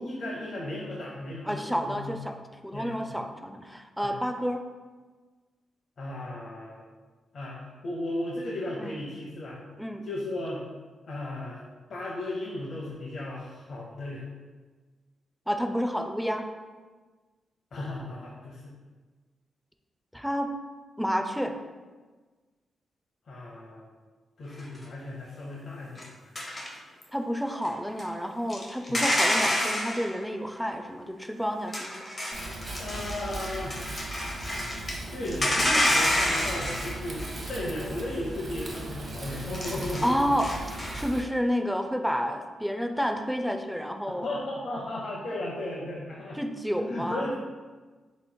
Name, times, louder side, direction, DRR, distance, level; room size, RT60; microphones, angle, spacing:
voice 1, 0.0-2.2 2.7-3.2 4.0-4.2 6.0-6.9 7.3-9.6 10.0-10.7 11.1-11.6 11.9-14.3 17.7-18.7 23.3-23.9 24.4-26.1 28.9-29.0 32.8-34.1 35.1-40.3 44.2-46.4 46.8-47.3, left 1 dB, 55° left, -4 dB, 0.7 m, -35 dB
voice 2, 1.5-4.6 8.8-9.0 9.8-10.1 15.5-16.5 20.1-20.5 21.0-21.6 27.1-32.1 40.0-44.3 46.4-47.3, equal, ahead, 5 dB, 0.4 m, -30 dB
sound 1, 24.6-24.8 26.0-26.1 26.4-27.0 27.6-28.0 28.5-30.1 31.7-35.0 35.3-37.5 39.4-41.0, left 1 dB, 25° left, 0.8 m, -28 dB
Wind, 32.3-41.2, right 2 dB, 45° right, 0.9 m, -38 dB
7.6 x 3.0 x 2.2 m, 1.4 s
cardioid pair, 115°, 0 cm